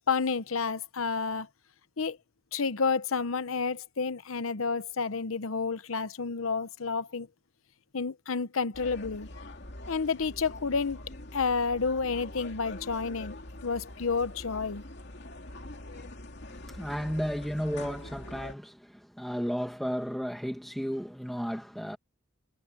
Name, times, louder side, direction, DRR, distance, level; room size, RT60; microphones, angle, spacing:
voice 1, 0.1-1.5 2.0-2.2 2.5-7.3 7.9-9.3 9.9-11.0 11.3-13.4 13.6-14.8, left 5 dB, 80° left, 0.8 m, -30 dB
sound 1, 8.7-18.5, left 1 dB, 55° left, 2.9 m, -44 dB
voice 2, 16.5-22.0, equal, ahead, 2.2 m, -33 dB
head